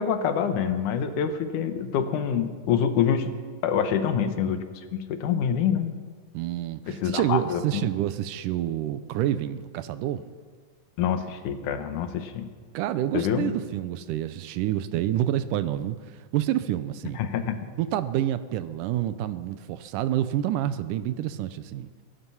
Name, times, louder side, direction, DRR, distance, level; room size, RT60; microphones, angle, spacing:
voice 1, 0.0-3.3 3.6-4.6 4.9-5.9 6.9-7.9 11.0-12.5 13.1-13.5 17.2-17.6, left 8 dB, 75° left, 2.5 m, -26 dB
voice 2, 6.3-10.2 12.7-17.2 17.8-21.9, right 12 dB, 80° right, 2.2 m, -28 dB
20.0 x 11.5 x 5.6 m
omnidirectional pair, 3.7 m